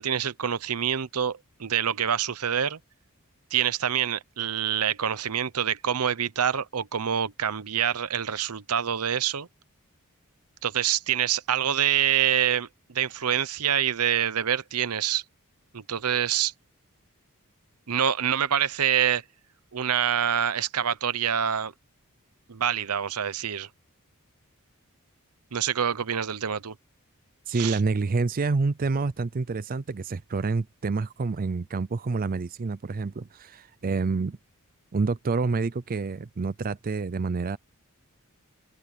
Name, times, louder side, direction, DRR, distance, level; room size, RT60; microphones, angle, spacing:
voice 1, 0.0-2.8 3.5-9.5 10.6-15.2 15.7-16.5 17.9-19.2 19.7-21.7 22.5-23.7 25.5-26.7 27.5-27.8, right 9 dB, 80° right, 0.8 m, -26 dB
voice 2, 27.5-34.4 34.9-37.6, right 4 dB, 40° right, 0.5 m, -28 dB
open air
head